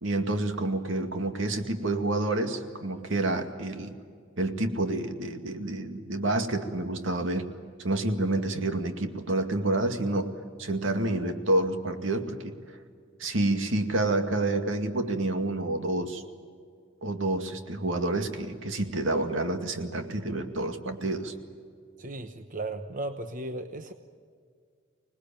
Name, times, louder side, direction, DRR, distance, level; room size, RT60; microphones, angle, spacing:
voice 1, 0.0-3.9 4.4-7.5 7.8-10.3 10.6-12.5 13.2-16.2 17.0-21.3, right 2 dB, 75° right, 6 dB, 2.2 m, -28 dB
voice 2, 22.0-23.9, right 2 dB, 40° right, 7 dB, 1.0 m, -36 dB
26.0 x 20.0 x 9.0 m, 2.1 s
head